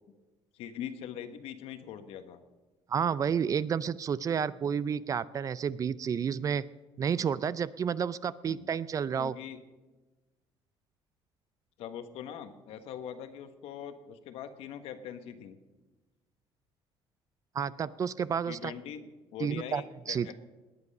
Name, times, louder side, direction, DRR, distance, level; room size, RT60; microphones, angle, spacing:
voice 1, 0.5-2.4 8.4-8.8 9.2-9.6 11.8-15.6 18.5-19.1 19.3-20.3, left 9 dB, 75° left, 9 dB, 1.3 m, -42 dB
voice 2, 2.9-6.6 7.0-9.4 17.5-18.7 19.4-20.3, right 7 dB, 35° right, 18 dB, 0.4 m, -30 dB
18.5 x 9.8 x 5.4 m, 1.2 s
cardioid pair, 130°, 10 cm